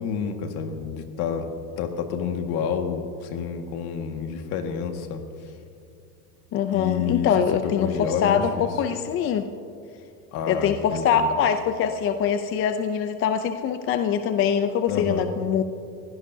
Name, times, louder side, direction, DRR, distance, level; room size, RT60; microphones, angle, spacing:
voice 1, 0.0-1.5 1.8-5.2 6.7-7.3 7.6-8.7 10.3-11.3 14.9-15.3, left 7 dB, 50° left, 4 dB, 1.9 m, -29 dB
voice 2, 6.5-9.5 10.5-15.6, left 7 dB, 30° left, 9 dB, 0.5 m, -23 dB
22.5 x 16.5 x 2.8 m, 2.5 s
supercardioid pair, 125°, 48 cm